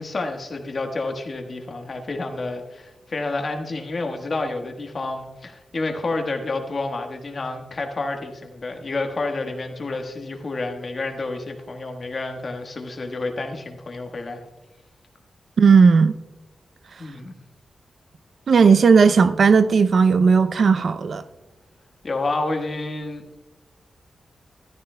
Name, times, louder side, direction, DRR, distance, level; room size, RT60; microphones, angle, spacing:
voice 1, 0.0-14.4 17.0-17.3 22.0-23.2, left 2 dB, 40° left, 4 dB, 1.3 m, -29 dB
voice 2, 15.6-16.1 18.5-21.2, right 5 dB, 60° right, 12 dB, 0.4 m, -15 dB
14.0 x 12.5 x 2.2 m, 1.0 s
wide cardioid pair, 140°, 0 cm